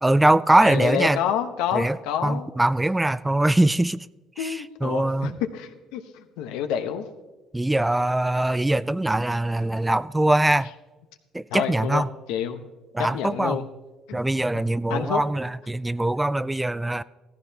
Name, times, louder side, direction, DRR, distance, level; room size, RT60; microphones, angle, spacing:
voice 1, 0.0-1.2 1.7-4.1 4.4-5.3 7.5-10.7 11.3-12.1 12.9-13.6 14.1-17.0, right 1 dB, 10° right, 0.3 m, -22 dB
voice 2, 0.6-2.5 4.4-6.0 6.4-7.0 11.5-12.0 12.3-12.7 13.0-13.6 14.1-14.2 14.5-14.6 14.9-15.2, left 9 dB, 85° left, 1.0 m, -28 dB
15.5 x 14.5 x 2.9 m
cardioid pair, 95°, 0 cm